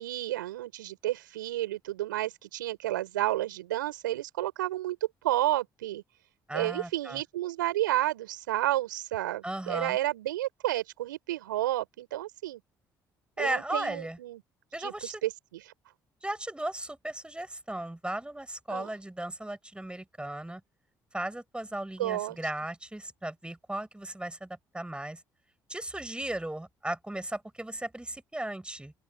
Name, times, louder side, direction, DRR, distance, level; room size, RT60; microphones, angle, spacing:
voice 1, 0.0-5.0 5.2-6.0 6.5-12.6 13.4-14.4 14.8-14.9 15.2-15.3 18.7-18.9 22.0-22.4, right 15 dB, 80° right, 6.2 m, -31 dB
voice 2, 6.5-7.2 9.4-10.0 13.4-14.2 14.7-15.2 16.2-20.6 21.1-25.2 25.7-28.9, right 1 dB, 10° right, 6.7 m, -36 dB
open air
figure-of-eight pair, 50°, 10 cm